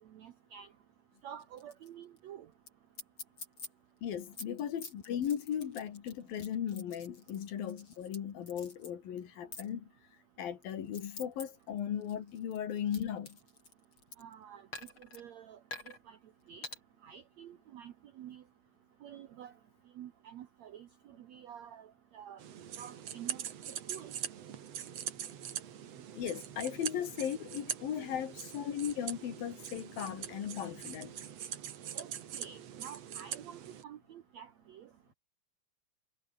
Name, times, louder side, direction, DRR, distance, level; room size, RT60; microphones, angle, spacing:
voice 1, 0.1-0.7 1.2-2.5 14.2-14.7 15.0-15.6 15.9-16.2 16.5-16.7 17.0-18.4 19.0-19.5 20.0-22.4 22.8-24.1 31.9-34.9, right 9 dB, 75° right, 1.6 m, -49 dB
sound 1, 1.4-1.9 2.2-2.3 2.7-2.8 3.0-3.7 4.1-8.2 8.5-8.9 9.5-9.7 10.4-11.4 11.8-14.3 14.7-15.2 15.7-16.0 16.6-16.8, left 3 dB, 30° left, 6.6 m, -47 dB
voice 2, 4.0-9.9 10.4-13.4 26.2-31.2, left 9 dB, 65° left, 3.9 m, -37 dB
sound 2, 22.4-33.8, right 9 dB, 50° right, 2.3 m, -43 dB
omnidirectional pair, 4.5 m